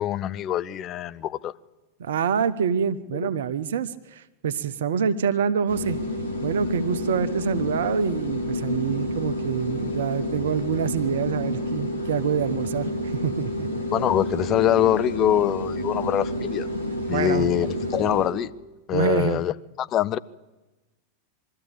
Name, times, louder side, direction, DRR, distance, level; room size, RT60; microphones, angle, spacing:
voice 1, 0.0-1.5 13.9-16.7 17.1-18.5 18.9-19.5 19.8-20.2, left 11 dB, 30° left, 0.6 m, -24 dB
voice 2, 2.0-6.0 6.4-13.7 17.1-17.5 18.9-19.4, right 7 dB, 60° right, 0.8 m, -26 dB
sound 1, 5.7-18.3, left 1 dB, 85° left, 3.3 m, -29 dB
23.0 x 13.5 x 8.7 m
figure-of-eight pair, 90°, 0 cm